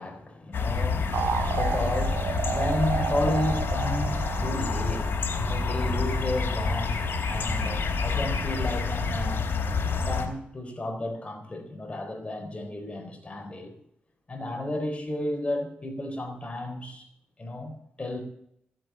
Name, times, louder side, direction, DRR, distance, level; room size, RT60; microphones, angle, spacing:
voice 1, 0.0-9.5 9.9-13.8 14.3-17.1 17.4-18.2, left 1 dB, 30° left, 4.0 m, -33 dB
sound 1, 0.5-10.3, left 4 dB, 65° left, 3.7 m, -28 dB
sound 2, 1.1-5.6, right 7 dB, 75° right, 0.8 m, -32 dB
17.0 x 7.8 x 7.5 m
cardioid pair, 75°, 4 cm